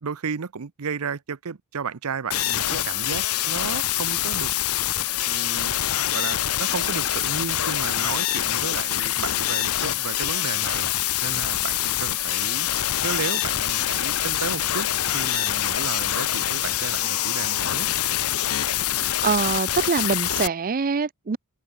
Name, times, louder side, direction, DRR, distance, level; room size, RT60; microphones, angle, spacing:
voice 1, 0.0-4.5 5.2-5.7 6.1-12.7 13.0-14.9 15.1-17.9, right 5 dB, 75° right, 0.7 m, -33 dB
sound 1, 2.3-20.5, left 13 dB, 75° left, 0.9 m, -25 dB
voice 2, 19.0-21.4, right 5 dB, 40° right, 0.5 m, -24 dB
head